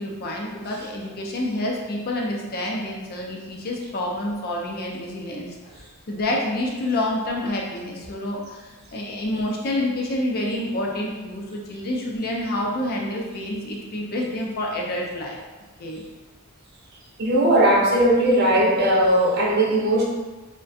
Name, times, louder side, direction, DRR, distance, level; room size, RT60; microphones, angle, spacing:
voice 1, 0.0-5.6 6.1-15.4 15.8-16.0, left 1 dB, 45° left, -1 dB, 0.4 m, -28 dB
voice 2, 17.2-20.0, right 1 dB, 50° right, -4 dB, 0.6 m, -18 dB
2.4 x 2.1 x 2.6 m, 1.2 s
head